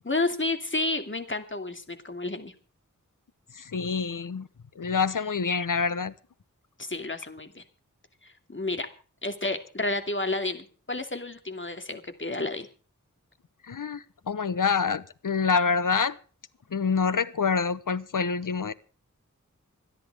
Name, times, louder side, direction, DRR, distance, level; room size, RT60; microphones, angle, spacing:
voice 1, 0.1-2.5 6.8-7.6 8.5-8.9 9.2-12.7, left 2 dB, 40° left, 2.6 m, -30 dB
voice 2, 3.6-4.5 4.8-6.1 13.7-16.2 16.7-18.7, left 5 dB, 90° left, 1.0 m, -26 dB
26.0 x 10.5 x 3.6 m
wide cardioid pair, 60°, 31 cm